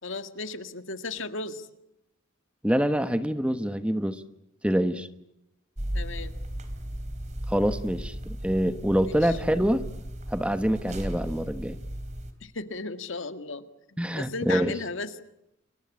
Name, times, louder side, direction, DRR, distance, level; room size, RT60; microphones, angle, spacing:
voice 1, 0.0-1.7 5.9-6.3 9.0-9.4 12.4-15.2, left 3 dB, 70° left, 9 dB, 1.8 m, -35 dB
voice 2, 2.6-4.2 4.6-5.1 7.5-9.8 10.3-11.8 14.0-14.7, equal, 5° right, 10 dB, 1.2 m, -25 dB
sound 1, 5.8-12.3, equal, 35° right, 3.5 m, -36 dB
29.5 x 22.5 x 8.5 m, 0.83 s
head